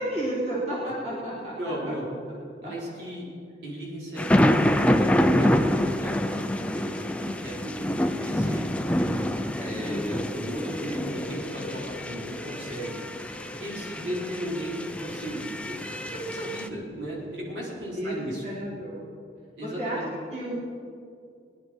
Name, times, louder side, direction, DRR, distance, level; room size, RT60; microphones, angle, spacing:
voice 1, 0.0-1.7 8.7-9.6 13.8-14.1 17.9-19.1 19.6-20.0 20.3-20.5, right 1 dB, 35° right, -7 dB, 3.3 m, -33 dB
voice 2, 1.6-2.1 2.6-3.3 3.6-4.6 5.0-8.9 9.6-13.2 13.6-18.4 19.6-20.0, equal, 65° right, -5 dB, 4.4 m, -36 dB
sound 1, 4.2-16.7, left 1 dB, 5° left, 0.5 m, -26 dB
sound 2, 9.6-17.6, left 1 dB, 30° left, 1.1 m, -44 dB
20.5 x 11.0 x 4.6 m, 2.4 s
head